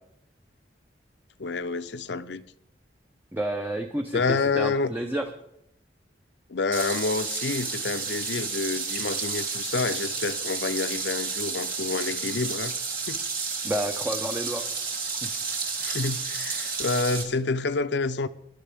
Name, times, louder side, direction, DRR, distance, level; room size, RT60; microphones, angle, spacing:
voice 1, 1.4-2.5 4.1-4.9 6.5-12.7 13.1-13.2 15.8-18.3, left 4 dB, 70° left, 0.6 m, -28 dB
voice 2, 3.3-5.3 13.6-14.6 15.2-15.4, right 1 dB, 10° right, 0.8 m, -30 dB
sound 1, 6.7-17.2, right 5 dB, 55° right, 2.8 m, -31 dB
21.0 x 11.5 x 3.5 m
head